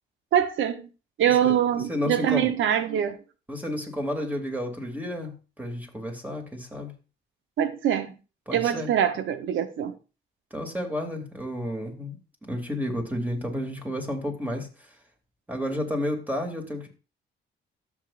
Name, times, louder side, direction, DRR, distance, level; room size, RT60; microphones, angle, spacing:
voice 1, 0.3-0.9 1.2-3.2 7.6-8.1 8.5-10.0, right 10 dB, 75° right, 1.0 m, -24 dB
voice 2, 1.9-2.5 3.5-6.9 8.5-8.9 10.5-12.2 12.4-14.7 15.5-16.9, left 1 dB, 10° right, 2.7 m, -31 dB
13.0 x 7.3 x 2.5 m
cardioid pair, 90°, 20 cm